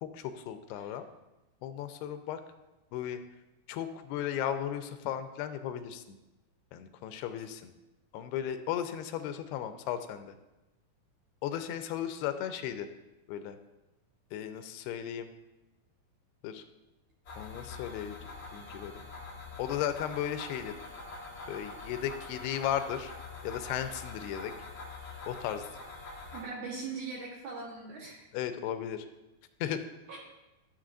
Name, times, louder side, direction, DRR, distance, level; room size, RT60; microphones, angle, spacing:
voice 1, 0.0-1.0 1.6-2.4 2.9-3.2 3.7-6.2 6.7-7.7 8.1-10.4 11.4-12.9 13.3-13.6 14.3-15.3 16.4-16.6 17.4-18.2 18.5-18.9 19.6-20.7 21.5-23.1 23.4-24.5 25.3-25.7 28.3-29.1 29.6-29.8, left 10 dB, 90° left, 9 dB, 2.6 m, -35 dB
sound 1, 17.2-26.4, left 3 dB, 45° left, 1.6 m, -45 dB
voice 2, 26.3-28.3 30.1-30.2, right 4 dB, 65° right, -3 dB, 2.2 m, -40 dB
13.0 x 7.4 x 2.5 m, 0.99 s
omnidirectional pair, 4.6 m